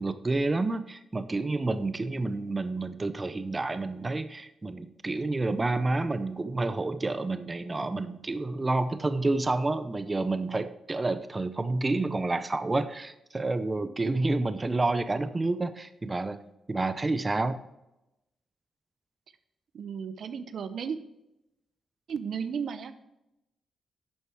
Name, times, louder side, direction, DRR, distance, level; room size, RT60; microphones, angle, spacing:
voice 1, 0.0-16.4 16.7-17.6, right 2 dB, 25° right, 12 dB, 0.6 m, -29 dB
voice 2, 19.7-21.0 22.1-23.0, right 6 dB, 65° right, 11 dB, 0.7 m, -34 dB
11.0 x 6.6 x 4.6 m, 0.90 s
cardioid pair, 75°, 0 cm